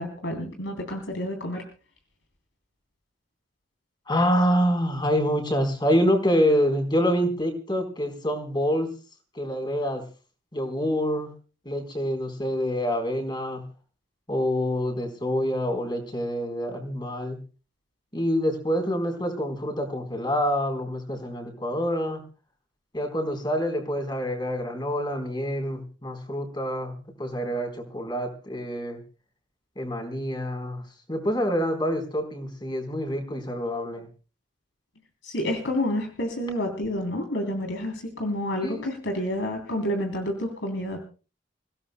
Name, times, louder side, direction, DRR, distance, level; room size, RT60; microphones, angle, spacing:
voice 1, 0.0-1.6 35.2-41.0, left 1 dB, 90° left, 3 dB, 3.3 m, -29 dB
voice 2, 4.1-8.9 9.3-10.0 10.5-11.3 11.7-13.6 14.3-17.4 18.1-22.2 22.9-29.0 29.8-30.8 31.1-34.1 38.6-38.8, equal, 25° left, 4 dB, 4.0 m, -26 dB
28.5 x 16.5 x 2.2 m, 0.36 s
head